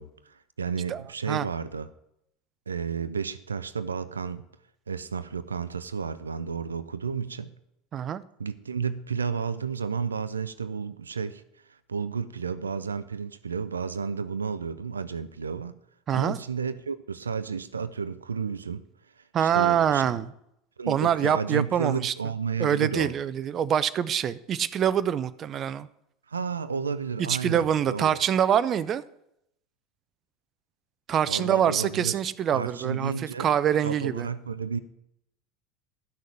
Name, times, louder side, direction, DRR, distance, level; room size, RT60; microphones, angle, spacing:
voice 1, 0.0-1.9 2.7-4.4 4.9-7.5 8.4-11.4 11.7-15.7 16.1-18.8 19.2-20.2 20.8-23.1 26.3-28.2 31.3-32.2 32.5-33.5 33.8-34.8, right 6 dB, 85° right, 13 dB, 0.5 m, -32 dB
voice 2, 7.9-8.2 16.1-16.4 19.3-20.3 20.9-22.1 22.6-25.9 27.3-29.0 31.1-34.3, right 9 dB, 35° right, 15 dB, 0.5 m, -25 dB
11.5 x 6.4 x 7.1 m, 0.77 s
figure-of-eight pair, 75°, 0 cm